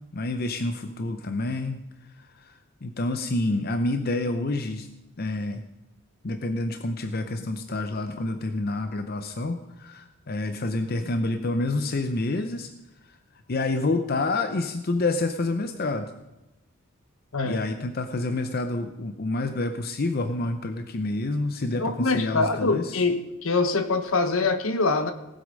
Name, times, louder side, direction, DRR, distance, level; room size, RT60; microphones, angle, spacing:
voice 1, 0.1-1.8 2.4-2.5 2.8-4.9 5.2-5.6 6.2-12.7 13.5-16.1 17.5-23.0, left 2 dB, 45° left, 8 dB, 0.7 m, -28 dB
voice 2, 21.8-25.1, left 3 dB, 70° left, 9 dB, 1.1 m, -24 dB
18.0 x 8.1 x 5.2 m, 1.0 s
head